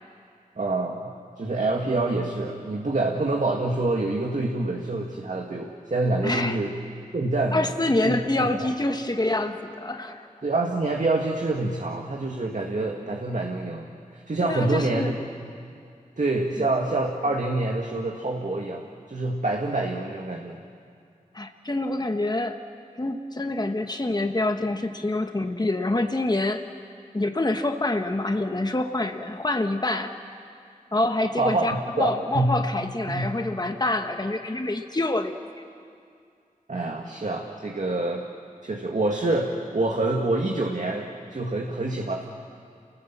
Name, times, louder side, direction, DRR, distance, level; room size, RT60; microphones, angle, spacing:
voice 1, 0.6-6.7 7.1-7.7 8.0-8.2 8.6-8.7 10.4-15.2 16.2-20.6 31.4-32.6 33.1-33.3 36.7-38.2 38.6-42.3, right 2 dB, 60° right, 1 dB, 2.0 m, -26 dB
voice 2, 6.2-6.6 7.5-10.3 14.4-15.2 16.6-16.7 21.3-22.6 23.0-26.7 27.1-30.1 30.9-35.3, left 2 dB, 30° left, 6 dB, 1.3 m, -26 dB
28.5 x 19.5 x 7.4 m, 2.3 s
cardioid pair, 45°, 15 cm